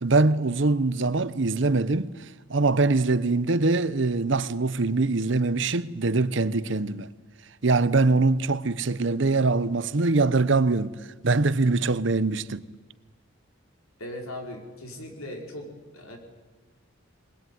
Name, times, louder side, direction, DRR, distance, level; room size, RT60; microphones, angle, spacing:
voice 1, 0.0-2.1 2.5-7.1 7.6-11.0 11.2-12.6, right 3 dB, 60° right, 0.8 m, -23 dB
voice 2, 14.0-16.2, left 1 dB, 90° left, 5.2 m, -39 dB
22.5 x 21.0 x 9.4 m
head